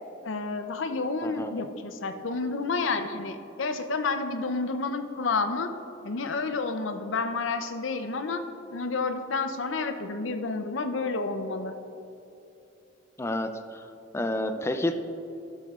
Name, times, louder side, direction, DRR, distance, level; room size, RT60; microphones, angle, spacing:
voice 1, 0.2-5.7 6.0-8.4 8.7-11.7, left 3 dB, 80° left, 8 dB, 0.6 m, -30 dB
voice 2, 13.2-13.8 14.1-14.9, left 1 dB, 15° left, 8 dB, 0.3 m, -29 dB
12.5 x 7.6 x 2.4 m, 2.9 s
head